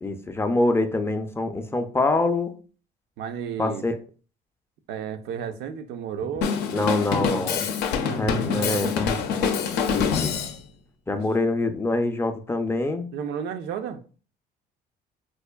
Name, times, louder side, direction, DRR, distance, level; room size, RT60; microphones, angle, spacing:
voice 1, 0.0-2.6 3.6-3.9 6.7-7.6 8.2-9.5 9.9-10.3 11.1-13.1, left 2 dB, 15° left, 0.4 m, -25 dB
voice 2, 3.2-3.9 4.9-6.6 8.0-9.2 11.1-11.2 13.1-14.0, right 7 dB, 85° right, 0.5 m, -33 dB
Drum kit, 6.4-10.6, left 6 dB, 80° left, 0.5 m, -25 dB
4.6 x 2.5 x 2.2 m
cardioid pair, 110°, 17 cm